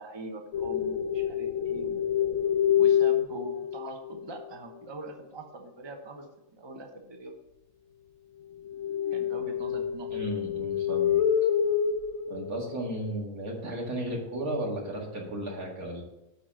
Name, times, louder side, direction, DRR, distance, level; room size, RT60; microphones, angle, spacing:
voice 1, 0.0-2.1 2.8-6.3 6.5-7.3 9.1-10.3, right 2 dB, 20° right, 3 dB, 0.9 m, -42 dB
sound 1, 0.5-4.2 8.7-13.1, left 9 dB, 75° left, 1.1 m, -27 dB
voice 2, 10.1-11.2 12.3-16.0, right 1 dB, 85° right, -1 dB, 2.6 m, -34 dB
9.8 x 4.2 x 6.3 m, 0.90 s
omnidirectional pair, 1.5 m